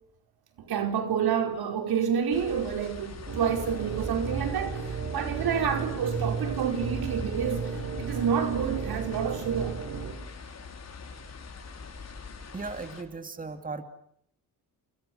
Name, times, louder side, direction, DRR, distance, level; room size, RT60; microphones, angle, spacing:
voice 1, 0.6-4.9 5.1-7.7 8.0-9.8, right 7 dB, 80° right, 5.0 m, -28 dB
sound 1, 2.3-13.0, left 5 dB, 45° left, 5.0 m, -43 dB
sound 2, 3.3-10.1, right 5 dB, 60° right, 4.9 m, -34 dB
voice 2, 12.5-13.8, right 3 dB, 20° right, 2.5 m, -37 dB
29.5 x 29.0 x 6.4 m
cardioid pair, 115°, 37 cm